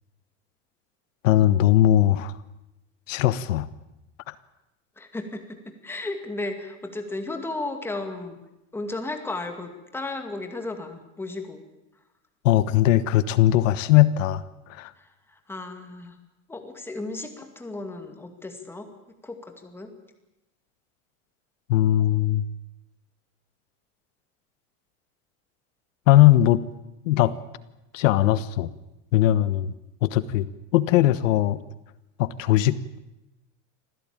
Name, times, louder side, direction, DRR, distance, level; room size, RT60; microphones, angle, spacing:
voice 1, 1.2-2.3 3.1-3.7 4.3-4.4 12.4-14.4 14.7-14.9 21.7-22.4 26.1-26.6 27.0-27.3 27.9-28.7 29.1-29.7 30.0-30.5 30.7-31.6 32.2-33.0, left 13 dB, 85° left, 15 dB, 1.2 m, -19 dB
voice 2, 5.0-8.4 8.7-11.6 15.0-16.2 16.5-18.9 19.2-19.9, left 2 dB, 5° left, 5 dB, 2.3 m, -34 dB
26.0 x 16.0 x 8.9 m, 0.94 s
supercardioid pair, 160°, 38 cm